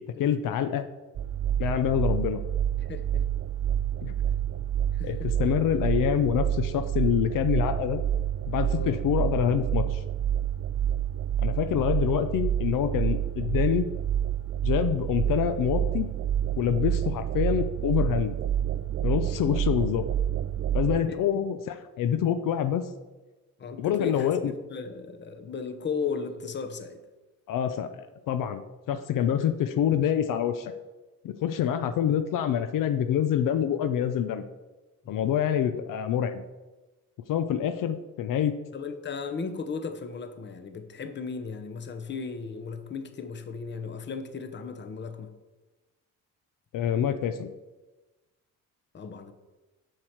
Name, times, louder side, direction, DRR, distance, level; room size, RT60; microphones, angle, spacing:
voice 1, 0.2-0.9 1.6-2.4 4.0-4.2 5.0-8.0 8.5-10.0 11.4-13.8 14.6-16.1 16.6-18.4 19.0-20.0 20.7-22.8 23.8-24.5 27.5-28.6 28.9-30.7 31.2-34.4 35.1-36.4 37.3-38.6 46.7-47.5, left 9 dB, 75° left, 9 dB, 0.6 m, -26 dB
sound 1, 1.2-21.0, right 10 dB, 45° right, 0.5 m, -28 dB
voice 2, 2.8-3.2 4.9-5.3 8.7-9.0 11.5-11.7 21.1-21.2 23.6-27.0 35.0-35.3 38.7-45.3 48.9-49.3, left 5 dB, 35° left, 9 dB, 0.8 m, -36 dB
7.5 x 6.5 x 4.5 m, 1.1 s
cardioid pair, 130°, 33 cm